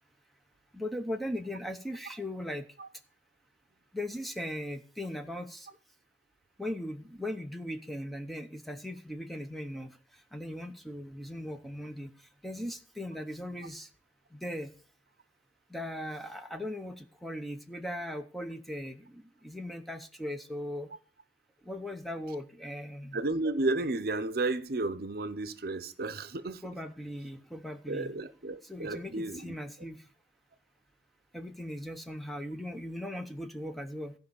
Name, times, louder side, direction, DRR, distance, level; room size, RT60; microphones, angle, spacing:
voice 1, 0.7-2.6 3.9-5.7 6.6-10.0 10.3-12.1 12.4-13.9 14.3-14.7 15.7-20.9 21.7-23.2 26.6-28.1 28.6-30.0 31.3-34.1, left 1 dB, ahead, 0.8 m, -38 dB
voice 2, 23.1-26.6 27.9-29.5, right 2 dB, 60° right, 0.7 m, -32 dB
14.0 x 5.3 x 7.0 m
head